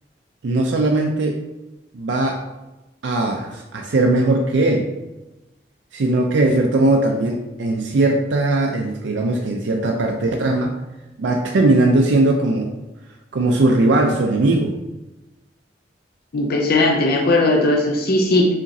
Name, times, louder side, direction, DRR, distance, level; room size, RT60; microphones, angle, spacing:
voice 1, 0.4-1.4 1.9-2.4 3.0-4.9 5.9-10.8 11.2-12.7 13.3-14.7, right 2 dB, 85° right, 2 dB, 0.5 m, -19 dB
voice 2, 16.3-18.5, left 2 dB, 60° left, 0 dB, 0.6 m, -17 dB
5.0 x 2.9 x 2.7 m, 1.0 s
head